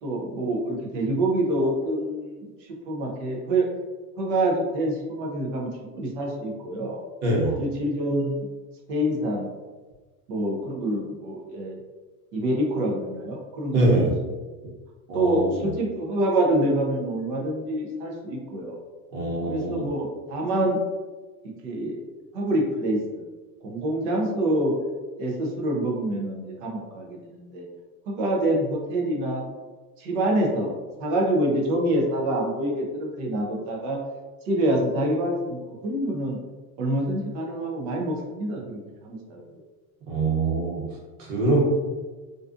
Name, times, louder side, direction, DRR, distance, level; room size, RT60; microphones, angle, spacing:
voice 1, 0.0-3.7 4.2-7.0 7.4-8.4 8.9-9.5 10.3-11.8 12.3-14.1 15.1-18.7 19.4-20.8 21.6-22.1 22.3-23.2 23.6-24.7 25.2-27.6 28.1-29.4 30.0-30.7 31.0-34.0 34.4-36.4 36.8-39.4, right 1 dB, 40° right, -1 dB, 0.4 m, -26 dB
voice 2, 7.2-7.5 13.7-14.1 15.1-15.5 19.1-19.9 40.1-40.8 41.2-41.6, right 2 dB, 60° right, -3 dB, 0.9 m, -23 dB
2.4 x 2.3 x 2.4 m, 1.3 s
supercardioid pair, 155°, 46 cm